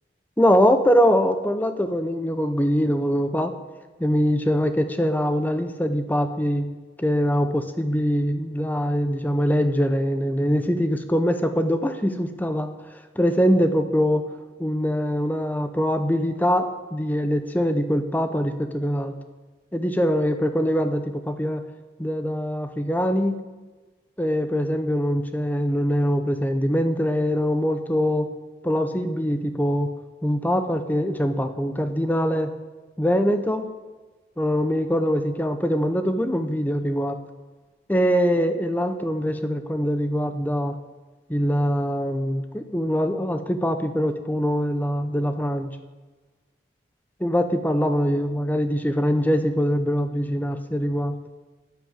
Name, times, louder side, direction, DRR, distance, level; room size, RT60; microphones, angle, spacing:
voice 1, 0.4-3.5 4.0-6.7 7.0-12.7 13.2-14.3 14.6-19.1 19.7-21.6 22.0-23.4 24.2-28.3 28.6-29.9 30.2-32.5 33.0-33.7 34.4-37.2 37.9-40.8 41.3-45.7 47.2-51.2, equal, 10° left, 8 dB, 0.7 m, -23 dB
10.5 x 9.2 x 7.4 m, 1.3 s
head